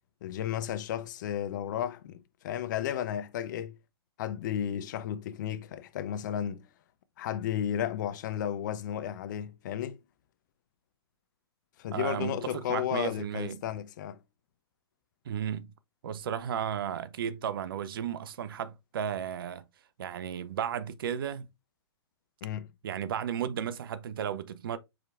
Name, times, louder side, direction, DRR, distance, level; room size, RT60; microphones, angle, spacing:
voice 1, 0.2-3.8 4.2-6.7 7.2-10.0 11.8-14.2 22.4-22.7, left 10 dB, 45° left, 0.5 m, -33 dB
voice 2, 11.9-13.6 15.3-15.7 16.0-19.6 20.0-21.5 22.8-24.8, right 8 dB, 55° right, 0.5 m, -34 dB
4.9 x 4.5 x 2.4 m
figure-of-eight pair, 120°, 14 cm